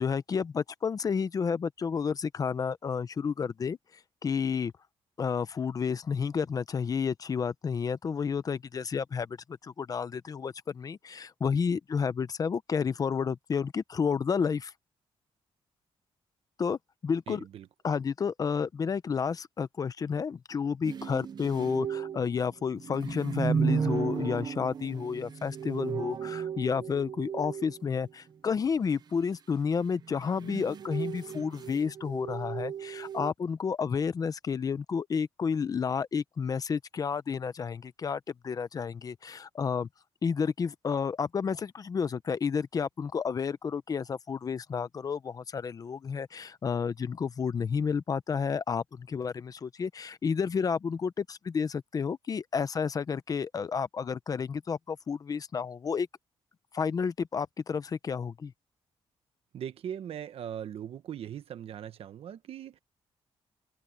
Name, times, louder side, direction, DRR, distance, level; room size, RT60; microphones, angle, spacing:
voice 1, 0.0-3.8 4.2-4.7 5.2-9.4 9.6-14.7 16.6-17.4 17.8-39.9 40.2-56.1 56.7-58.5, left 6 dB, 35° left, 0.7 m, -31 dB
voice 2, 17.3-17.7 59.5-62.8, right 9 dB, 65° right, 1.3 m, -40 dB
sound 1, 20.8-28.1 30.0-33.3, right 7 dB, 40° right, 0.8 m, -34 dB
open air
wide cardioid pair, 150°, 11 cm